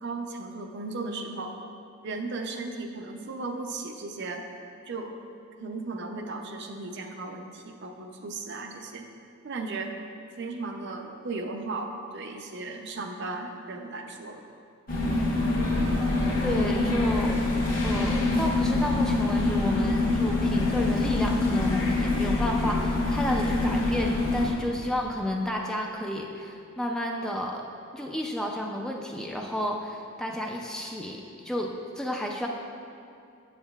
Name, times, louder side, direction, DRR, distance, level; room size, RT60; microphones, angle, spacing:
voice 1, 0.0-1.5 2.0-4.5 4.9-5.1 5.6-9.1 9.4-9.9 10.4-14.4, right 3 dB, 55° right, 4 dB, 0.5 m, -36 dB
sound 1, 14.9-24.5, left 2 dB, 45° left, 1.2 m, -25 dB
voice 2, 16.4-17.4 17.8-27.6 27.9-32.5, left 1 dB, 5° left, 0 dB, 0.3 m, -31 dB
7.8 x 7.3 x 2.3 m, 2.6 s
head